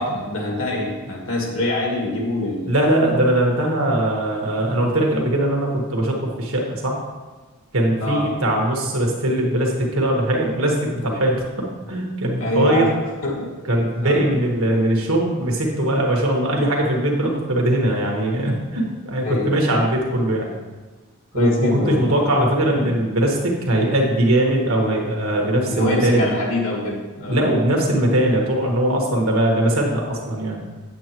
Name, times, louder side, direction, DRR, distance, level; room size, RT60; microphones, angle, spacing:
voice 1, 0.0-2.8 8.0-8.3 12.4-12.9 13.2-13.6 14.0-14.2 19.2-19.5 21.3-22.1 25.7-27.4, left 2 dB, 80° left, -1 dB, 2.0 m, -24 dB
voice 2, 2.7-7.0 7.7-12.9 13.6-20.5 21.3-26.4 27.3-30.6, right 1 dB, 85° right, 0 dB, 1.6 m, -20 dB
8.6 x 7.8 x 3.1 m, 1.3 s
head